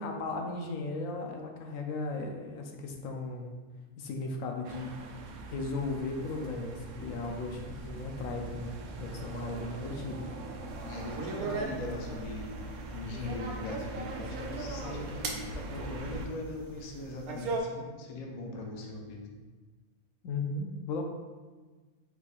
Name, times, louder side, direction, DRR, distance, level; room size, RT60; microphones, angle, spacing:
voice 1, 0.0-3.5 4.0-4.9 5.5-10.3 20.2-21.0, left 3 dB, 70° left, 2 dB, 0.9 m, -36 dB
sound 1, 4.6-16.3, right 2 dB, 70° right, 0.8 m, -42 dB
sound 2, 10.7-17.6, right 3 dB, 90° right, 1.1 m, -39 dB
voice 2, 10.8-19.3, left 2 dB, 50° left, 0 dB, 0.5 m, -40 dB
4.7 x 2.5 x 4.0 m, 1.3 s
omnidirectional pair, 1.5 m